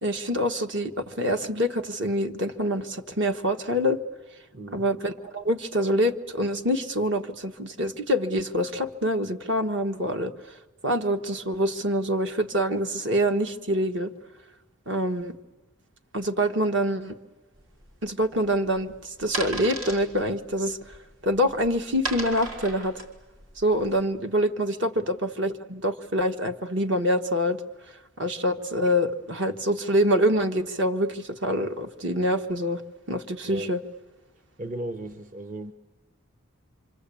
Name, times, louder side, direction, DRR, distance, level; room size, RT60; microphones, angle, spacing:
voice 1, 0.0-4.0 4.7-10.3 10.8-14.1 14.9-15.3 16.1-17.1 18.0-21.0 21.2-23.0 23.6-27.6 28.2-32.8 33.1-33.8, equal, 60° right, 7 dB, 1.3 m, -25 dB
voice 2, 4.5-4.9 25.0-25.1 33.5-33.7 34.6-35.7, right 1 dB, 40° right, 9 dB, 0.8 m, -36 dB
sound 1, 17.5-24.0, right 2 dB, 80° right, 4.6 m, -37 dB
27.0 x 25.5 x 8.5 m, 1.2 s
head